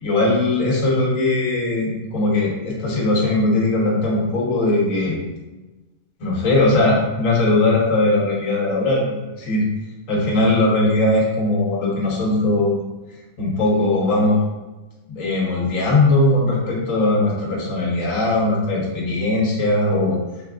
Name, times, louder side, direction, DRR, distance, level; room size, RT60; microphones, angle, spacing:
voice 1, 0.0-5.2 6.2-9.6 10.1-12.8 13.4-14.4 15.1-20.2, left 2 dB, 60° left, -4 dB, 1.4 m, -19 dB
6.3 x 3.3 x 2.4 m, 1.1 s
omnidirectional pair, 1.6 m